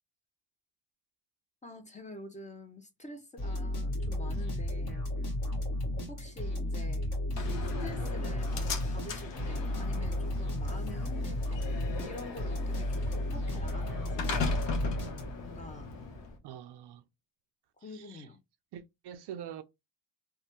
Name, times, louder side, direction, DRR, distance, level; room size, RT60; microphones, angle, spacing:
voice 1, 1.6-5.1 6.1-7.1 7.6-11.7 12.0-14.5 15.4-15.9 17.8-18.4, left 2 dB, 15° left, 0.6 m, -47 dB
sound 1, 3.4-15.6, left 1 dB, 50° left, 1.6 m, -33 dB
Slam, 7.4-16.4, left 4 dB, 70° left, 1.0 m, -39 dB
voice 2, 16.4-17.0 17.8-18.3 18.7-19.6, right 10 dB, 65° right, 0.5 m, -45 dB
3.2 x 2.1 x 2.8 m
cardioid pair, 100°, 45 cm